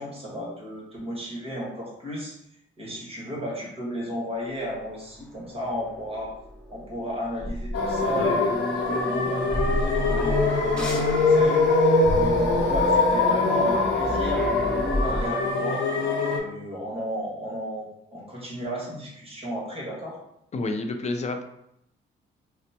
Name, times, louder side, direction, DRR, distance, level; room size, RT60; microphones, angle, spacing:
voice 1, 0.0-2.4 2.8-6.3 6.7-11.9 12.1-15.8 16.3-20.2, equal, 30° right, -4 dB, 1.5 m, -34 dB
sound 1, 4.8-15.3, equal, 5° left, 0.8 m, -32 dB
sound 2, 7.7-16.4, left 3 dB, 65° left, 0.9 m, -23 dB
voice 2, 20.5-21.4, left 2 dB, 35° left, 6 dB, 0.5 m, -29 dB
5.0 x 2.1 x 2.9 m, 0.76 s
cardioid pair, 90°, 20 cm